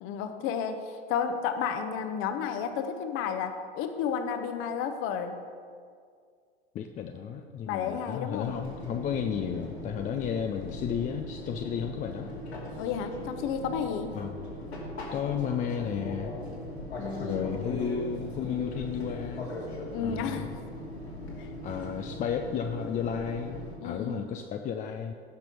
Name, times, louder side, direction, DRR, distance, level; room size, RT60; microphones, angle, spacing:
voice 1, 0.0-0.8 1.1-5.4 7.7-8.5 12.8-14.1 17.0-17.7 19.9-20.6 21.4-21.5 23.8-24.3, left 7 dB, 40° left, 8 dB, 1.1 m, -32 dB
voice 2, 6.7-12.3 14.1-14.4 15.1-16.3 17.2-19.5 20.0-20.5 21.6-25.1, left 7 dB, 25° left, 5 dB, 0.6 m, -33 dB
Fixed-wing aircraft airplane, 8.4-23.7, left 1 dB, 75° left, 2.7 m, -39 dB
17.0 x 6.0 x 5.3 m, 2.1 s
figure-of-eight pair, 80°, 32 cm